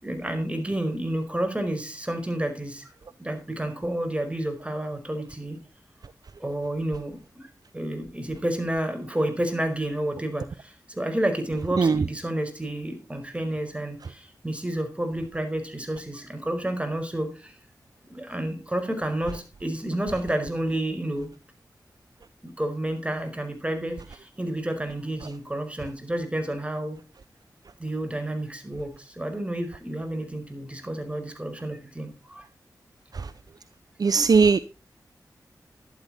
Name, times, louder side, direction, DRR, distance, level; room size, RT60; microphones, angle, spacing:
voice 1, 0.0-2.9 3.2-5.6 6.4-17.6 18.1-21.3 22.4-27.0 27.8-32.4, right 1 dB, 15° right, 6 dB, 5.0 m, -30 dB
voice 2, 34.0-34.6, right 5 dB, 65° right, 14 dB, 0.6 m, -18 dB
12.0 x 12.0 x 4.3 m, 0.32 s
cardioid pair, 50°, 7 cm